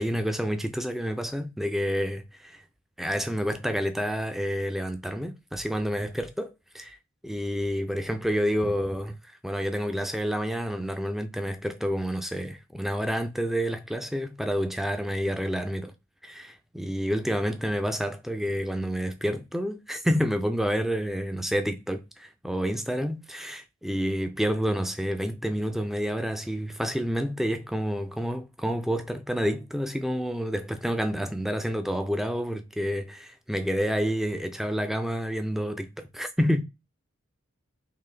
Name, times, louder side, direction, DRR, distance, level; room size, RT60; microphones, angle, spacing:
voice 1, 0.0-2.6 3.0-6.9 7.2-15.9 16.2-36.6, equal, ahead, 0.4 m, -29 dB
3.8 x 2.6 x 3.2 m
head